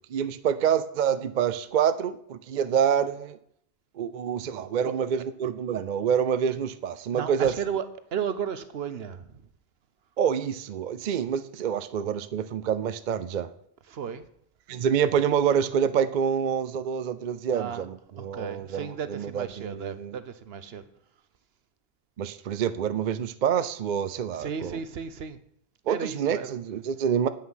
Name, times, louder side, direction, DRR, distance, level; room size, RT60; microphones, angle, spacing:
voice 1, 0.1-3.4 4.0-7.5 10.2-13.5 14.7-20.2 22.2-24.8 25.9-27.3, right 8 dB, 55° right, 13 dB, 0.6 m, -27 dB
voice 2, 7.1-7.8 8.1-9.4 13.9-14.3 17.5-17.8 18.2-20.8 24.3-25.4 25.9-26.5, right 7 dB, 70° right, 12 dB, 1.0 m, -34 dB
9.4 x 8.7 x 5.6 m, 0.69 s
omnidirectional pair, 1.1 m